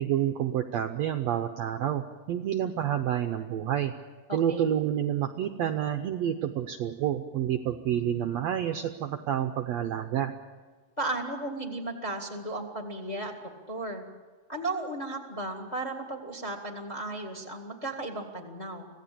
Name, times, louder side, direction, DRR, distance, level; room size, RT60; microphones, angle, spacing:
voice 1, 0.0-3.9 4.3-10.3, right 10 dB, 70° right, 7 dB, 1.7 m, -29 dB
voice 2, 4.3-4.6 11.0-14.0 14.5-18.9, right 2 dB, 15° left, 3 dB, 1.5 m, -35 dB
25.5 x 16.5 x 8.6 m, 1.4 s
omnidirectional pair, 3.8 m